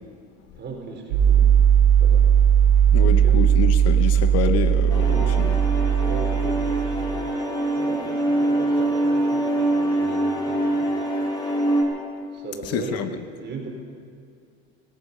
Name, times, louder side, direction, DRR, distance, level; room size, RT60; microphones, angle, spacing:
voice 1, 0.6-1.6 2.0-2.3 3.0-3.4 5.0-5.5 6.0-10.9 12.3-13.0 13.4-13.7, right 4 dB, 35° right, 0 dB, 4.4 m, -37 dB
sound 1, 1.1-7.2, right 9 dB, 75° right, 3.8 m, -18 dB
voice 2, 2.9-5.6 12.6-13.1, left 9 dB, 50° left, 10 dB, 1.0 m, -27 dB
sound 2, 4.9-11.8, right 1 dB, 15° left, 3.5 m, -24 dB
17.0 x 14.0 x 5.4 m, 2.3 s
hypercardioid pair, 90°, 31 cm